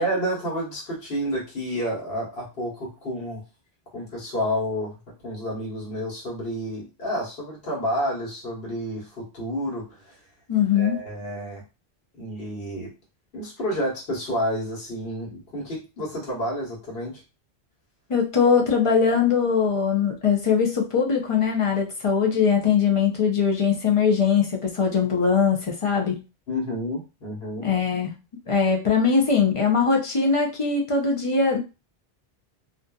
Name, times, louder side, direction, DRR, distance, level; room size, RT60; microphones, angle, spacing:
voice 1, 0.0-3.4 3.9-10.2 10.7-11.6 12.2-12.9 13.3-17.2 26.5-27.7, equal, 70° left, -3 dB, 1.4 m, -30 dB
voice 2, 10.5-11.0 18.1-26.2 27.6-28.1 28.5-31.6, left 6 dB, 45° left, 1 dB, 0.4 m, -21 dB
2.5 x 2.5 x 2.2 m, 0.29 s
omnidirectional pair, 1.1 m